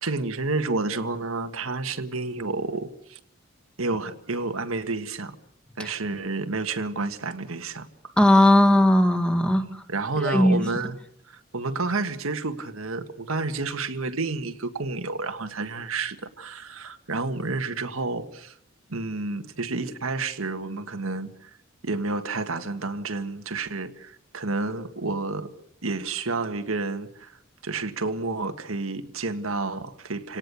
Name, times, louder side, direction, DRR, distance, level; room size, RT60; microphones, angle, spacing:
voice 1, 0.0-3.2 3.8-5.4 5.8-8.1 9.6-11.0 11.3-18.5 18.9-21.6 21.8-25.5 25.8-27.3 27.6-30.4, right 3 dB, 90° right, 1.7 m, -30 dB
voice 2, 8.2-9.8 10.2-10.6, left 1 dB, 5° left, 1.9 m, -18 dB
29.0 x 18.0 x 7.0 m
head